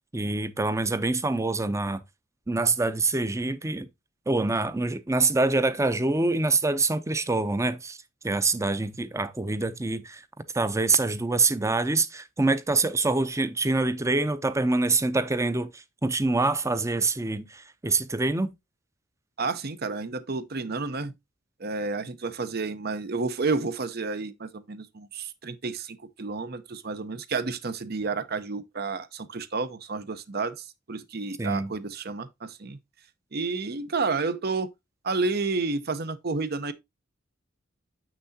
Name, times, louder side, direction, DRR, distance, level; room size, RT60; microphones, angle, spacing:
voice 1, 0.1-2.0 2.5-3.9 4.3-8.0 8.2-10.2 10.5-18.5 31.4-31.7, right 3 dB, 15° right, 0.6 m, -25 dB
voice 2, 19.4-21.1 21.6-32.8 33.3-34.7 35.0-36.7, right 4 dB, 55° right, 0.8 m, -30 dB
7.6 x 6.0 x 2.7 m
head